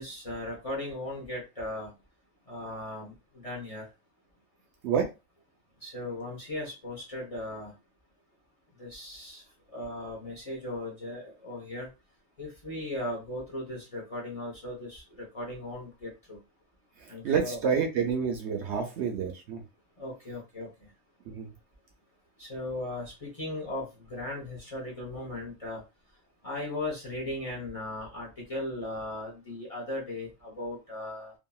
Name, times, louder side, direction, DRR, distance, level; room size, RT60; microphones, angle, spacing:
voice 1, 0.0-1.9 2.5-3.9 5.8-7.7 8.8-11.9 12.4-16.4 17.1-17.8 20.0-20.9 22.4-25.8 26.4-31.3, left 1 dB, 30° left, -2 dB, 0.8 m, -37 dB
voice 2, 17.0-19.6 21.3-21.5, right 6 dB, 65° right, 3 dB, 0.8 m, -28 dB
2.8 x 2.6 x 2.3 m, 0.27 s
omnidirectional pair, 1.4 m